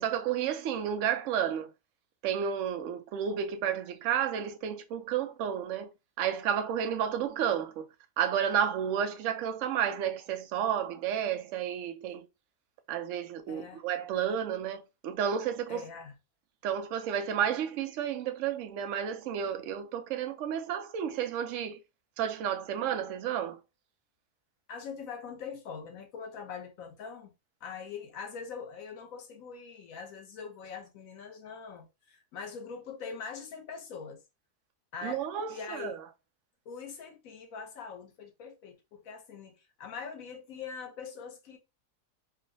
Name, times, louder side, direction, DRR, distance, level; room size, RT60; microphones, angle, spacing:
voice 1, 0.0-1.7 2.2-5.9 6.2-7.9 8.2-12.2 12.9-15.9 16.6-21.8 22.2-23.6 35.0-36.0, right 8 dB, 65° right, 0.8 m, -31 dB
voice 2, 13.5-13.8 15.7-16.1 24.7-27.3 27.6-34.2 34.9-36.0 36.7-41.6, left 6 dB, 65° left, 1.1 m, -43 dB
4.6 x 2.1 x 2.6 m
omnidirectional pair, 1.7 m